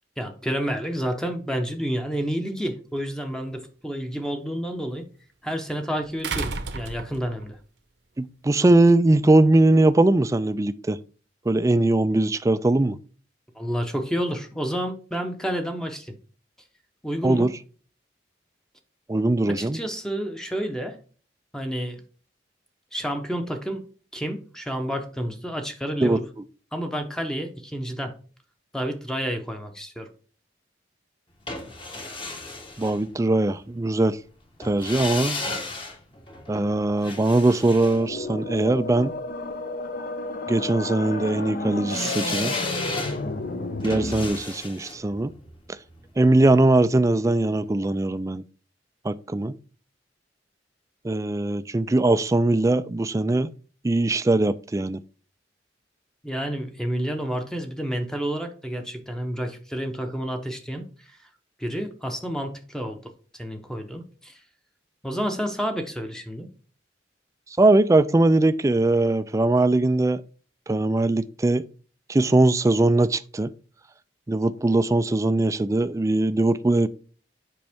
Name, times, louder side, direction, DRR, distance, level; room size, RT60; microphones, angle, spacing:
voice 1, 0.2-5.1 5.4-7.6 13.5-16.1 17.0-17.5 19.4-21.0 21.5-22.0 22.9-23.9 24.1-26.2 26.7-28.1 28.7-30.1 56.2-61.2 61.6-64.4 65.0-66.5, equal, 5° left, 0.8 m, -30 dB
sound 1, 3.0-3.1 6.2-7.5 8.9-9.0, right 4 dB, 70° right, 0.9 m, -31 dB
voice 2, 8.2-11.0 11.5-13.0 17.2-17.5 19.1-19.8 26.0-26.2 32.8-34.2 34.6-35.4 36.5-39.1 40.5-42.5 43.8-45.3 46.2-48.4 49.0-49.5 51.0-53.5 53.8-55.0 67.6-70.2 70.7-71.6 72.1-73.5 74.3-76.9, right 2 dB, 15° right, 0.3 m, -21 dB
sound 2, 31.5-33.6 34.6-38.9 41.9-46.9 47.2-47.3, left 3 dB, 30° left, 1.3 m, -35 dB
sound 3, 37.8-44.3, left 2 dB, 55° left, 0.8 m, -32 dB
7.8 x 5.4 x 3.5 m
head